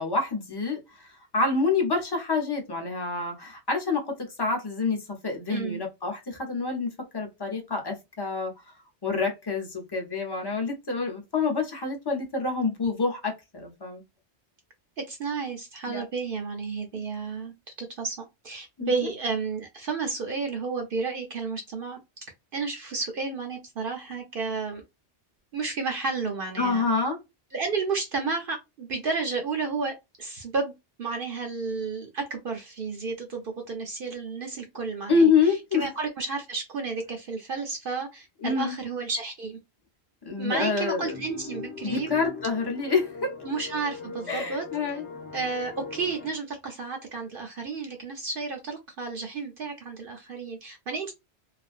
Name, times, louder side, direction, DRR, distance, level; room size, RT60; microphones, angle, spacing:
voice 1, 0.0-8.5 9.0-14.0 15.9-16.0 16.9-17.0 18.8-18.9 26.6-27.2 35.1-35.9 38.4-38.8 40.2-41.1 41.8-43.3 44.3-45.0, left 4 dB, 25° left, 0.7 m, -27 dB
voice 2, 5.5-5.8 15.0-18.2 18.4-22.0 22.5-24.8 25.5-26.8 27.5-30.7 31.0-39.6 40.4-42.1 43.4-44.7 44.9-45.0 45.3-51.1, right 4 dB, 60° right, 0.7 m, -32 dB
sound 1, 41.0-46.3, left 4 dB, 85° left, 1.0 m, -40 dB
2.4 x 2.1 x 2.4 m
omnidirectional pair, 1.2 m